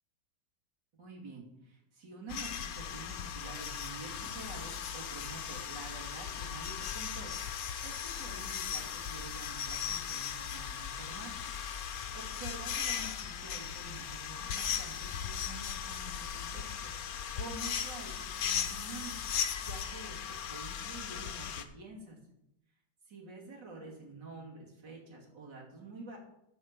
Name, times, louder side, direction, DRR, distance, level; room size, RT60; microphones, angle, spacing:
voice 1, 1.0-11.4 11.9-19.2 19.6-22.2 23.1-26.2, right 3 dB, 75° right, -2 dB, 3.2 m, -48 dB
sound 1, 2.3-21.6, left 8 dB, 60° left, 1.2 m, -38 dB
13.5 x 5.0 x 6.7 m, 0.82 s
omnidirectional pair, 1.9 m